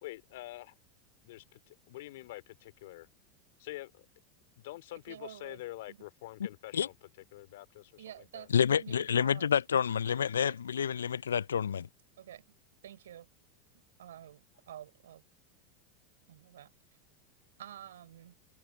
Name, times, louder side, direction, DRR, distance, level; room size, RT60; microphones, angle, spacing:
voice 1, 0.0-0.7 1.2-3.1 3.6-4.1 4.6-7.0 7.3-8.5, left 18 dB, 65° left, 2.7 m, -46 dB
voice 2, 4.9-5.6 5.9-6.0 8.0-9.6 10.4-10.6 12.2-12.4 12.8-13.3 14.0-15.2 16.3-16.7 17.6-18.4, right 11 dB, 75° right, 4.1 m, -49 dB
voice 3, 8.5-11.9, left 8 dB, 80° left, 0.4 m, -28 dB
hypercardioid pair, 85°, 0 cm